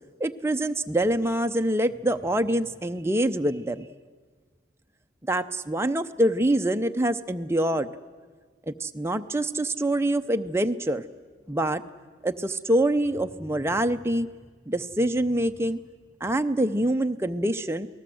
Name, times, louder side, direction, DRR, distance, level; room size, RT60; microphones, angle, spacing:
voice 1, 0.2-3.9 5.3-7.9 8.7-11.0 11.5-11.8 12.2-14.3 14.7-15.8 16.2-17.9, right 1 dB, 15° right, 7 dB, 0.6 m, -25 dB
28.0 x 19.0 x 7.8 m, 1.5 s
head